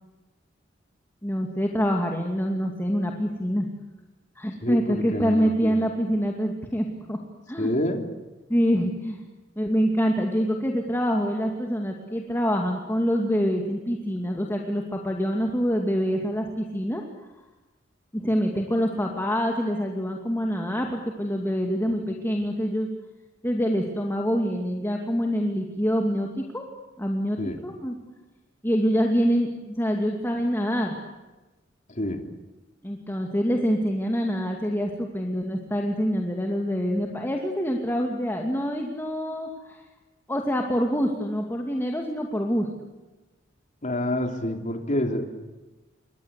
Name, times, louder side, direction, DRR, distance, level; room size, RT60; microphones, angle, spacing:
voice 1, 1.2-3.7 4.4-7.2 7.5-7.7 8.5-9.2 9.6-17.0 18.1-22.9 23.4-26.6 27.0-28.0 28.6-31.0 32.8-39.8 40.3-42.7, equal, 10° left, 1 dB, 2.4 m, -26 dB
voice 2, 4.6-5.8 7.6-8.0 27.4-27.6 31.9-32.2 43.8-45.3, left 1 dB, 40° left, 4 dB, 3.4 m, -28 dB
28.5 x 24.0 x 8.3 m, 1.1 s
head